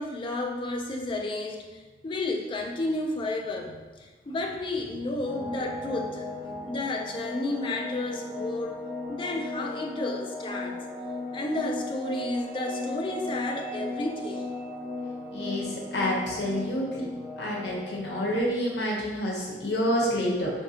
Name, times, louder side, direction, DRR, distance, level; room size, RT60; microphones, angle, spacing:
voice 1, 0.0-8.7 9.1-10.8 11.3-14.5, left 2 dB, 30° left, 1 dB, 0.3 m, -32 dB
sound 1, 5.2-18.4, left 2 dB, 5° right, 1.4 m, -36 dB
voice 2, 15.3-17.1 17.4-20.5, equal, 70° left, -3 dB, 0.8 m, -28 dB
3.3 x 2.6 x 2.7 m, 1.3 s
head